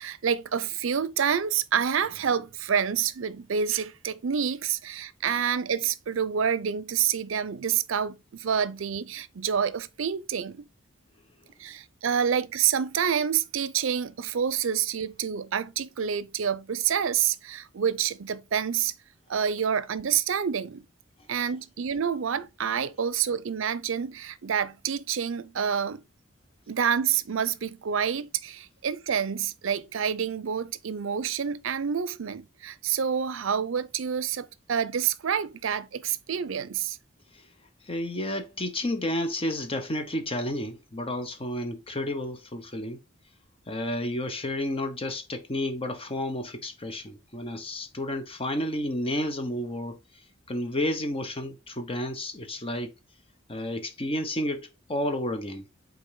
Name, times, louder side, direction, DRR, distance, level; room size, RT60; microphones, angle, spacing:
voice 1, 0.0-10.7 11.6-18.9 19.3-20.8 21.3-26.0 26.7-37.0, right 8 dB, 75° right, 0.5 m, -28 dB
voice 2, 37.9-43.0 43.7-50.0 50.5-52.9 53.5-55.7, left 1 dB, 30° left, 1.0 m, -31 dB
5.4 x 3.9 x 4.6 m
head